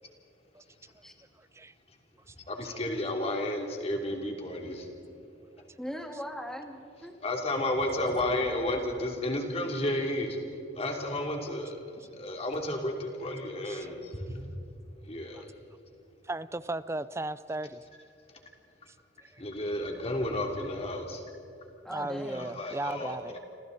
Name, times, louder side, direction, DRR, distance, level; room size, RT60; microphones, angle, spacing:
voice 1, 2.3-4.8 7.2-14.5 15.0-15.5 18.3-18.4 19.4-21.2 22.3-23.4, left 1 dB, 35° left, 2 dB, 3.1 m, -32 dB
voice 2, 5.8-7.1 21.8-22.5, equal, 5° left, 3 dB, 2.1 m, -39 dB
voice 3, 16.3-17.8 19.3-19.4 21.9-23.4, right 2 dB, 15° right, 15 dB, 0.5 m, -36 dB
29.0 x 26.5 x 4.1 m, 2.8 s
head